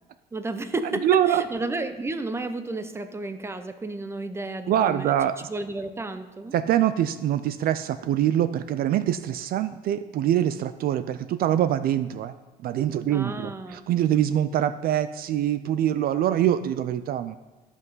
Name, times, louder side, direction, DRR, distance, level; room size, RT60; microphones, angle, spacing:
voice 1, 0.3-5.1 5.5-6.5 13.1-13.8, right 2 dB, 15° right, 10 dB, 0.8 m, -32 dB
voice 2, 1.0-1.4 4.7-5.4 6.5-12.3 12.6-17.4, right 11 dB, 60° right, 13 dB, 0.4 m, -24 dB
13.0 x 5.7 x 5.5 m, 1.2 s
cardioid pair, 110°, 17 cm